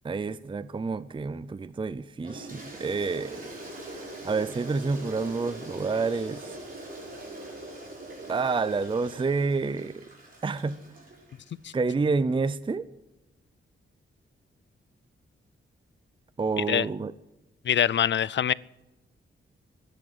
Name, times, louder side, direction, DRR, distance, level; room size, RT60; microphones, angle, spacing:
voice 1, 0.0-3.5 4.2-6.6 8.3-10.0 10.4-10.8 11.7-12.9 16.4-17.1, right 4 dB, 25° right, 16 dB, 0.5 m, -28 dB
Toilet flush, 2.2-11.6, right 1 dB, 40° right, 5.2 m, -42 dB
voice 2, 17.7-18.5, left 9 dB, 60° left, 23 dB, 0.4 m, -23 dB
13.0 x 11.0 x 9.6 m, 1.0 s
wide cardioid pair, 125°, 21 cm